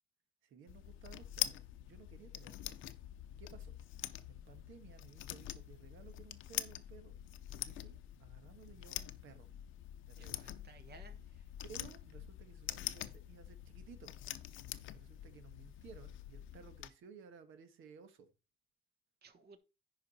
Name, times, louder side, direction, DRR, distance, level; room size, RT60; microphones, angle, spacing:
voice 1, 0.4-2.8 3.4-3.7 4.3-7.1 7.5-9.5 10.0-10.5 11.6-14.2 14.9-18.3, right 6 dB, 85° right, 1.4 m, -57 dB
sound 1, 0.7-16.9, left 13 dB, 85° left, 0.7 m, -45 dB
voice 2, 10.2-11.5 19.2-19.6, right 4 dB, 55° right, 1.4 m, -59 dB
10.5 x 4.8 x 4.1 m
cardioid pair, 90°, 20 cm